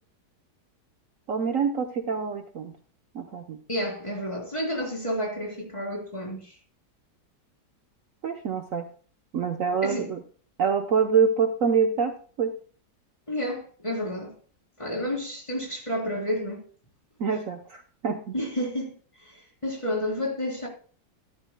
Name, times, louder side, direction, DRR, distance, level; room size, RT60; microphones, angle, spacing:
voice 1, 1.3-2.7 3.1-3.6 8.2-8.9 9.3-10.2 10.6-12.5 17.2-18.3, right 6 dB, 55° right, 1.2 m, -26 dB
voice 2, 3.7-6.6 9.8-10.1 13.3-14.4 14.8-16.6 18.3-19.0 19.2-20.7, equal, 15° left, 3.6 m, -30 dB
13.5 x 12.5 x 2.2 m
omnidirectional pair, 1.8 m